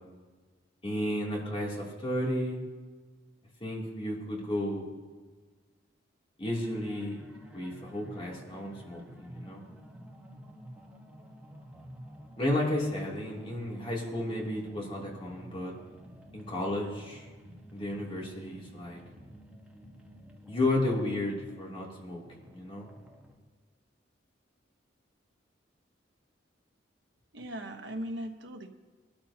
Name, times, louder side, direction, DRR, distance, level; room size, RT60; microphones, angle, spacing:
voice 1, 0.8-2.6 3.6-4.9 6.4-7.2 7.5-9.6 12.4-15.7 16.3-17.3 17.7-19.0 20.5-22.2 22.5-22.9, left 1 dB, 30° left, -3 dB, 3.0 m, -33 dB
sound 1, 6.5-23.4, equal, 5° right, 1.5 m, -51 dB
voice 2, 27.3-28.7, equal, 70° right, 5 dB, 1.2 m, -38 dB
20.5 x 13.0 x 2.9 m, 1.4 s
head